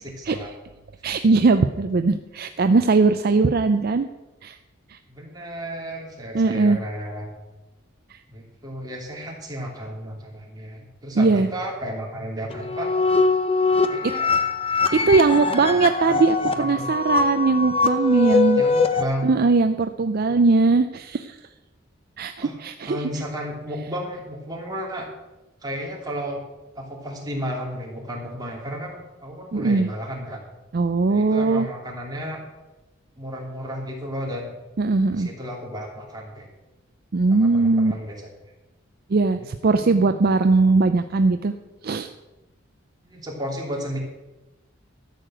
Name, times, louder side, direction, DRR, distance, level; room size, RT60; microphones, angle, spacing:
voice 1, 1.0-4.1 4.4-4.6 4.9-5.0 6.3-6.8 11.1-11.5 14.9-18.6 19.2-21.4 22.2-23.0 29.5-29.9 30.7-31.7 34.8-35.3 37.1-37.9 39.1-41.5 41.8-42.1, right 3 dB, 50° right, 9 dB, 0.5 m, -20 dB
voice 2, 5.1-7.3 8.3-12.9 13.9-14.3 15.2-16.1 16.6-16.9 18.6-19.3 22.4-22.5 22.8-25.1 25.6-26.4 26.7-30.4 31.1-32.4 33.2-34.5 35.1-36.5 37.3-38.3 39.3-40.3 40.6-40.7 43.0-44.0, equal, 20° right, -2 dB, 3.0 m, -33 dB
sound 1, 12.5-19.0, left 4 dB, 30° left, 0.8 m, -22 dB
13.0 x 6.7 x 7.7 m, 1.1 s
head